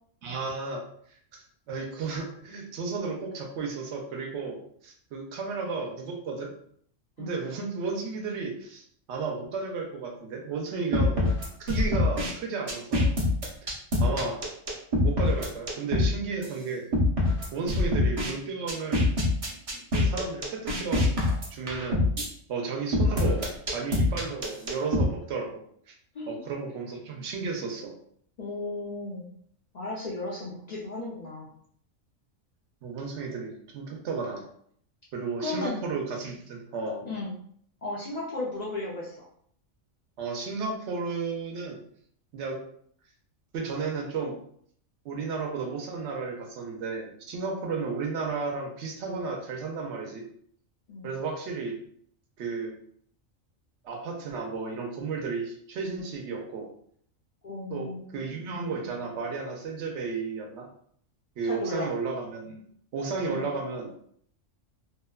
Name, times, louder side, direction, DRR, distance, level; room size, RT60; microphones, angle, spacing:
voice 1, 0.2-0.8 1.3-6.5 7.2-11.3 11.6-13.1 13.6-13.7 14.0-14.4 15.0-16.8 17.5-19.1 19.9-21.1 21.5-22.0 22.5-23.5 23.7-25.6 25.9-26.0 26.3-27.9 32.8-34.4 35.1-37.0 40.2-41.8 42.3-42.6 43.5-44.4 45.0-50.2 51.0-51.8 52.4-52.7 53.8-56.7 57.7-60.7 61.4-62.6 62.9-63.9, right 4 dB, 70° right, 1 dB, 0.8 m, -33 dB
sound 1, 10.9-12.3 12.7-16.1 16.4-16.5 16.9-18.3 18.7-22.3 22.9-25.0, left 2 dB, 45° right, 0.4 m, -24 dB
voice 2, 28.4-29.3 29.7-31.5 35.4-35.8 37.0-37.3 37.8-39.3 50.9-51.1 57.4-58.2 61.4-61.9 63.3-63.5, left 2 dB, 75° left, -6 dB, 0.3 m, -35 dB
2.7 x 2.1 x 2.3 m, 0.64 s
omnidirectional pair, 1.3 m